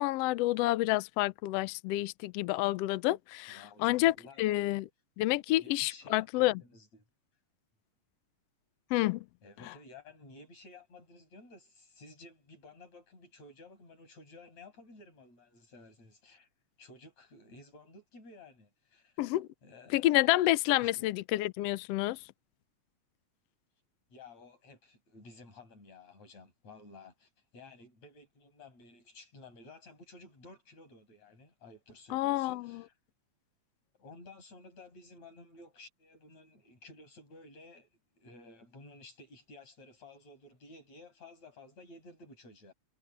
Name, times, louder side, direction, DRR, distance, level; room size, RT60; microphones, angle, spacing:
voice 1, 0.0-4.8 5.2-6.6 8.9-9.2 19.2-19.5 19.9-22.2 32.1-32.8, left 17 dB, 80° left, 1.4 m, -29 dB
voice 2, 3.5-4.4 5.6-7.0 9.4-16.5 16.8-19.2 19.6-20.1 20.8-21.1 24.1-32.9 33.9-37.9 38.2-42.7, left 2 dB, 65° left, 7.5 m, -54 dB
omnidirectional pair, 3.4 m